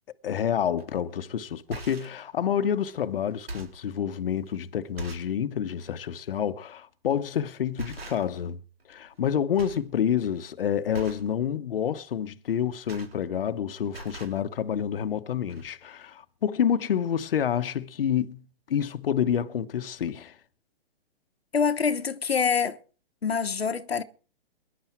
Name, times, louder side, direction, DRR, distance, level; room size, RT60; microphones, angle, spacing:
voice 1, 0.2-8.6 8.9-20.4, left 8 dB, 65° left, 1.2 m, -28 dB
sound 1, 0.8-1.0 1.5-2.2 2.9-3.0 3.3-3.9 4.5-4.6 5.0-5.4 5.7-5.9 7.1-7.3 7.8-8.5 8.8-9.3 9.6-9.9 10.2-10.5 10.9-11.3 12.5-13.6 13.8-14.4 15.2-15.3 15.5-15.6, right 2 dB, 80° right, 4.3 m, -41 dB
voice 2, 21.5-22.8 23.2-24.0, left 6 dB, 85° left, 1.3 m, -25 dB
23.0 x 11.0 x 4.5 m
hypercardioid pair, 130°, 30 cm